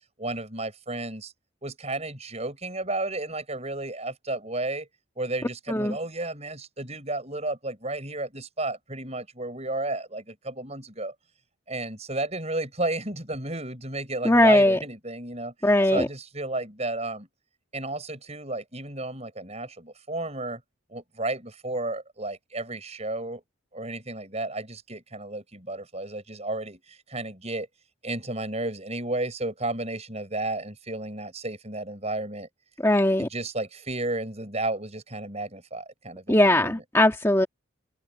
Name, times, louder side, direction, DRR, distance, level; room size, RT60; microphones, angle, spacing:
voice 1, 0.2-1.3 1.6-4.9 5.2-11.1 11.7-15.5 15.8-17.3 17.7-20.6 20.9-23.4 23.7-27.7 28.0-32.5 33.2-36.8, right 2 dB, 30° right, 6.8 m, -32 dB
voice 2, 14.2-14.8 15.6-16.1 32.8-33.3 36.3-37.5, left 1 dB, 15° left, 1.8 m, -19 dB
head